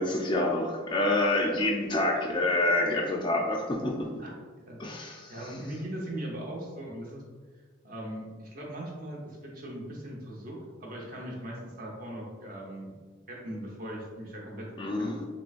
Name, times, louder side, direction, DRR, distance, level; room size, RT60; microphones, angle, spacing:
voice 1, 0.0-4.1 4.8-5.3 14.8-15.2, left 2 dB, 25° left, 1 dB, 0.3 m, -27 dB
voice 2, 4.7-7.2 7.5-12.9 13.3-14.7 15.0-15.2, right 1 dB, 45° right, -2 dB, 0.8 m, -39 dB
3.8 x 3.1 x 2.4 m, 1.5 s
head